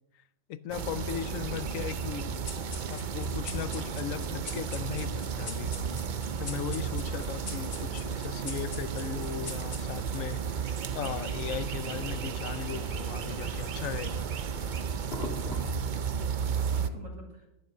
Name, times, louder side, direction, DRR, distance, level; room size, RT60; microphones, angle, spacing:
voice 1, 0.5-2.5 2.9-6.0 6.4-14.3, left 10 dB, 90° left, 15 dB, 1.1 m, -37 dB
sound 1, 0.7-16.9, right 7 dB, 50° right, 0.6 m, -33 dB
sound 2, 2.5-10.2, left 3 dB, 70° left, 2.2 m, -44 dB
sound 3, 3.1-15.7, left 2 dB, 55° left, 1.9 m, -49 dB
voice 2, 7.0-7.8 15.9-17.5, right 2 dB, 85° right, 0 dB, 3.0 m, -49 dB
11.0 x 9.1 x 6.7 m, 0.91 s
omnidirectional pair, 1.3 m